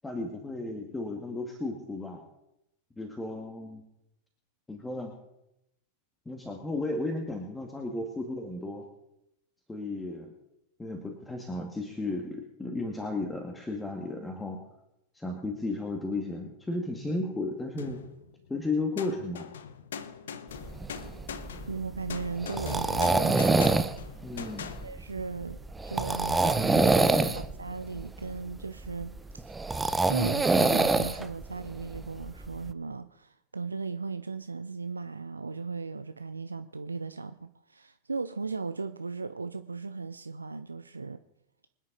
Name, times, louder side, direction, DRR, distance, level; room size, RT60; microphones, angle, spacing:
voice 1, 0.0-2.2 3.0-3.8 4.7-5.1 6.3-8.9 9.7-10.3 10.8-14.7 15.1-18.0 18.5-19.5 24.2-24.7 26.4-27.4, left 2 dB, 10° left, 3 dB, 1.9 m, -34 dB
sound 1, 17.8-18.5 19.0-24.9, left 7 dB, 65° left, 1.0 m, -42 dB
sound 2, 20.6-32.7, right 3 dB, 10° right, 0.8 m, -27 dB
voice 2, 21.7-23.7 24.6-25.6 25.8-27.1 27.3-29.6 30.1-41.2, right 4 dB, 80° right, 11 dB, 0.5 m, -37 dB
25.0 x 9.9 x 4.0 m, 0.87 s
figure-of-eight pair, 90°, 0 cm